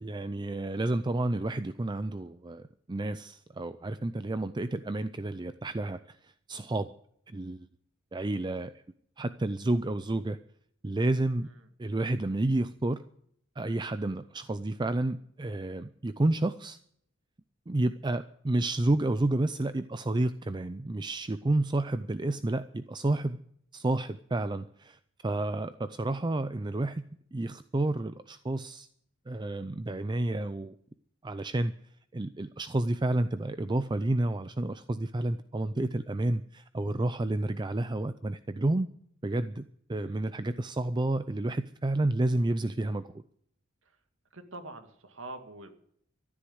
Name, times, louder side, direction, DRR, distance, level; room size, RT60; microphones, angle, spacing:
voice 1, 0.0-6.9 7.3-7.7 8.1-8.7 9.2-10.4 10.8-11.5 11.8-13.0 13.6-16.8 17.7-23.4 23.7-27.0 27.3-28.9 29.3-30.8 31.2-31.7 32.1-38.9 39.2-39.6 39.9-43.2, right 2 dB, 20° right, 12 dB, 0.5 m, -30 dB
voice 2, 44.3-45.7, right 2 dB, 70° right, 7 dB, 2.1 m, -45 dB
13.5 x 11.5 x 7.9 m, 0.65 s
head